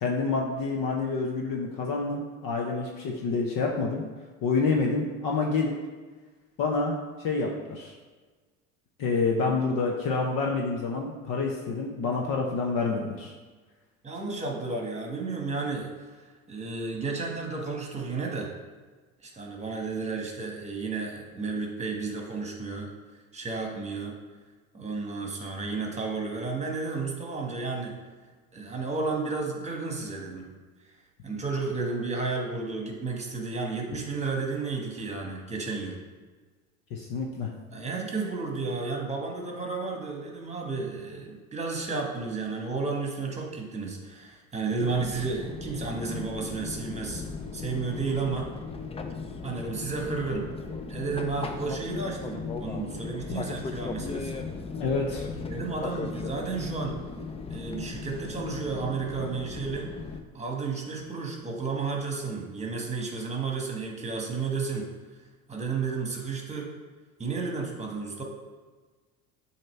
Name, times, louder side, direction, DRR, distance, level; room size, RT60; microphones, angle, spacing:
voice 1, 0.0-4.0 4.4-5.8 6.6-7.9 9.0-13.3 36.9-37.5 54.7-55.3, left 4 dB, 50° left, 0 dB, 0.9 m, -28 dB
voice 2, 14.0-18.5 19.2-22.9 23.3-24.1 24.7-27.9 28.5-30.5 31.2-36.0 37.7-47.2 47.5-48.5 49.4-50.5 50.9-54.4 55.5-57.0 57.5-59.9 60.3-64.9 65.5-66.7 67.2-68.2, right 4 dB, 15° right, 0 dB, 1.4 m, -32 dB
Fixed-wing aircraft airplane, 44.8-60.2, left 4 dB, 15° left, 0.4 m, -37 dB
7.5 x 2.9 x 4.4 m, 1.4 s
hypercardioid pair, 75°, 43 cm